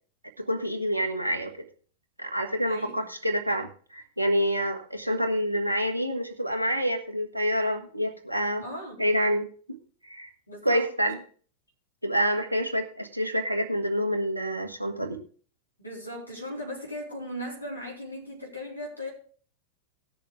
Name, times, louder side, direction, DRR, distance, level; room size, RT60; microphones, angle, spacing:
voice 1, 0.4-1.5 2.2-8.6 9.0-9.8 10.0-10.3 10.6-11.2 12.0-15.2, equal, 85° right, 4 dB, 1.4 m, -27 dB
voice 2, 2.7-3.1 8.6-9.1 10.5-10.9 15.8-19.1, equal, 85° left, -2 dB, 4.4 m, -37 dB
18.0 x 6.8 x 3.6 m, 0.42 s
figure-of-eight pair, 90°, 0 cm